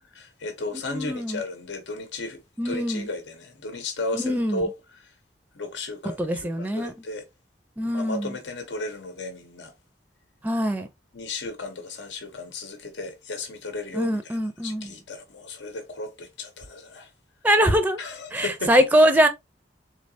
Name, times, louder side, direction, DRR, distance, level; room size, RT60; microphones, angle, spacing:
voice 1, 0.1-5.1 5.5-7.2 7.8-9.7 11.1-17.1 18.0-18.7, left 2 dB, 90° left, 0.8 m, -35 dB
voice 2, 0.9-1.4 2.6-3.1 4.1-4.6 6.2-6.9 7.8-8.3 10.4-10.9 13.9-14.9 17.4-18.0 18.3-19.3, equal, 10° right, 0.4 m, -22 dB
3.9 x 3.2 x 2.7 m
head